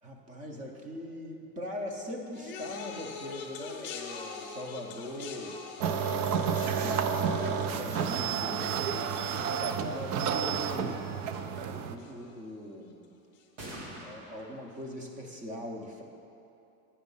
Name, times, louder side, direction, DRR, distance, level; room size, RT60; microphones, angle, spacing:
voice 1, 0.0-5.6 6.2-11.0 11.7-13.1 13.8-16.0, left 1 dB, 15° right, 2 dB, 0.5 m, -41 dB
sound 1, 2.3-11.7 12.0-12.5 13.4-13.5, left 6 dB, 25° left, 0.7 m, -45 dB
sound 2, 5.8-12.0, right 6 dB, 70° right, 0.6 m, -30 dB
sound 3, 10.1-10.2 10.6-11.0 13.6-14.5, right 1 dB, 85° right, 2.0 m, -44 dB
9.9 x 5.2 x 5.4 m, 2.7 s
supercardioid pair, 160°, 47 cm